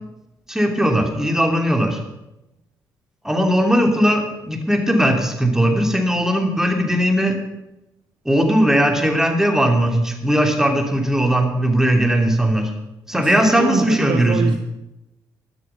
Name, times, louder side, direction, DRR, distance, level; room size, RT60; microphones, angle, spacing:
voice 1, 0.5-2.0 3.2-7.4 8.2-12.7 13.1-14.5, equal, 5° right, 3 dB, 2.9 m, -18 dB
voice 2, 13.1-14.6, right 7 dB, 50° right, 7 dB, 0.9 m, -25 dB
12.0 x 12.0 x 5.8 m, 0.92 s
figure-of-eight pair, 40°, 11 cm